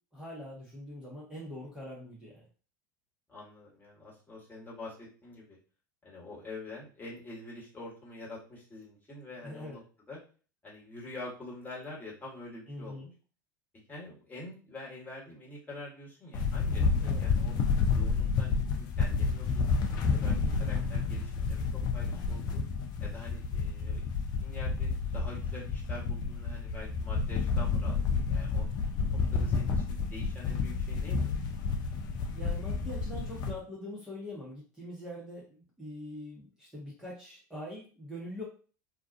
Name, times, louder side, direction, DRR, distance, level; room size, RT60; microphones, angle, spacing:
voice 1, 0.1-2.4 9.4-9.8 12.7-13.1 17.0-17.2 20.4-20.7 32.3-38.4, left 1 dB, 5° right, -6 dB, 0.9 m, -43 dB
voice 2, 3.3-5.6 6.0-9.8 10.1-10.2 10.6-13.1 13.9-17.5 17.9-18.5 18.8-22.6 23.0-24.1 24.4-28.7 29.3-31.3, left 2 dB, 15° left, -5 dB, 1.3 m, -46 dB
sound 1, 16.3-33.5, left 4 dB, 45° left, 0.5 m, -30 dB
2.3 x 2.3 x 2.5 m, 0.38 s
figure-of-eight pair, 75°, 10 cm